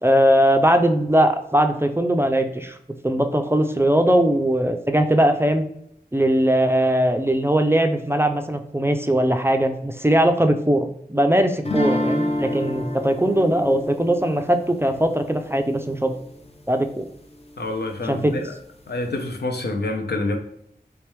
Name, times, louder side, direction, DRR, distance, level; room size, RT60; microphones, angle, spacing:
voice 1, 0.0-2.8 3.0-5.6 6.1-16.1 16.7-17.0 18.1-18.3, right 1 dB, 15° right, 6 dB, 0.3 m, -20 dB
sound 1, 11.7-16.6, left 1 dB, 40° left, 0.6 m, -28 dB
voice 2, 17.6-18.5 18.9-20.4, left 2 dB, 90° left, 4 dB, 0.6 m, -27 dB
3.3 x 3.3 x 3.1 m, 0.75 s
wide cardioid pair, 55°, 16 cm